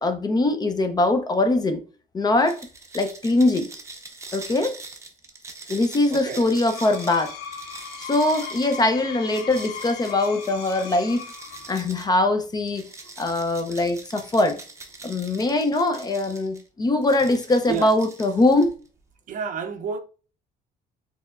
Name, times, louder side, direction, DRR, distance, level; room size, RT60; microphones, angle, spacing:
voice 1, 0.0-1.8 2.1-2.6 2.9-3.7 4.3-4.8 5.7-7.3 8.0-11.3 11.7-12.9 13.2-14.6 15.0-18.7, left 2 dB, 25° left, 0.6 m, -22 dB
sound 1, 2.4-12.1 12.7-16.6 17.0-18.9, right 3 dB, 15° right, 0.7 m, -43 dB
voice 2, 6.1-6.5 17.7-18.0 19.3-20.0, right 6 dB, 50° right, 0.6 m, -30 dB
Screech, 6.4-11.9, left 6 dB, 80° left, 0.6 m, -38 dB
4.5 x 3.0 x 2.4 m
cardioid pair, 115°, 17 cm